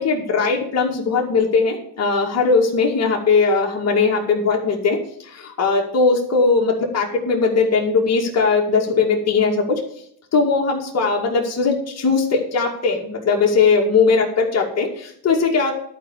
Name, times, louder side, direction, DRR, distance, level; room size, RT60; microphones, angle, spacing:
voice 1, 0.0-9.8 10.3-15.7, left 4 dB, 35° left, -2 dB, 2.3 m, -19 dB
11.0 x 4.9 x 7.2 m, 0.69 s
cardioid pair, 115°, 44 cm